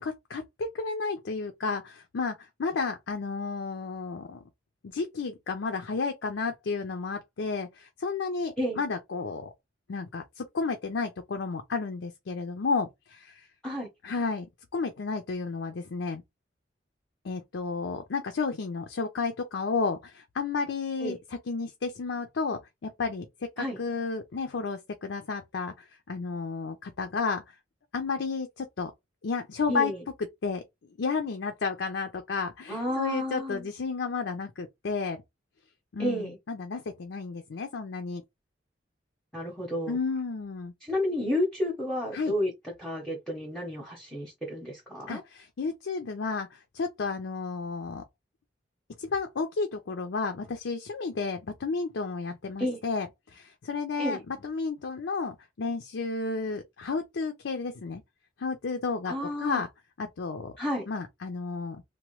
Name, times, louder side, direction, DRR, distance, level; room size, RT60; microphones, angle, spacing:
voice 1, 0.0-4.4 4.8-9.5 9.9-13.5 14.0-14.5 14.7-16.2 17.2-21.2 21.5-27.5 27.9-28.9 29.2-29.9 30.4-30.6 31.0-35.2 35.9-38.2 39.9-40.7 42.1-42.3 45.1-48.0 49.0-58.0 58.4-59.1 59.4-59.7 60.0-60.5 60.9-61.8, left 4 dB, 85° left, 0.5 m, -32 dB
voice 2, 29.7-30.0 32.7-33.7 36.0-36.4 39.3-40.0 40.8-42.5 42.8-45.2 52.6-52.8 54.0-54.2 59.1-59.6 60.6-60.8, left 1 dB, 5° left, 0.7 m, -31 dB
2.9 x 2.0 x 3.0 m
head